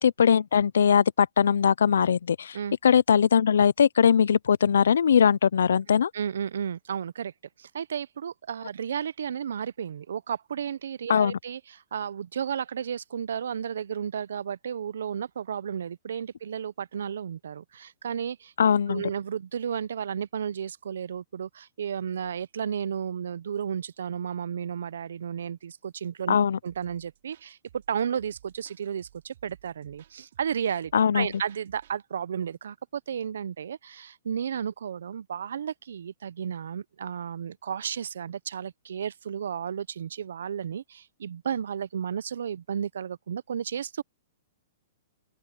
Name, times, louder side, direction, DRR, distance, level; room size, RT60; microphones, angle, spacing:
voice 1, 0.0-2.6 2.8-6.1 11.1-11.4 18.6-19.1 26.3-26.6 30.9-31.3, left 7 dB, 90° left, 0.3 m, -21 dB
voice 2, 6.1-7.3 7.6-18.5 18.9-26.4 26.6-44.0, right 8 dB, 85° right, 0.5 m, -33 dB
sound 1, 26.7-32.0, right 12 dB, 65° right, 5.2 m, -58 dB
open air
hypercardioid pair, 155°, 0 cm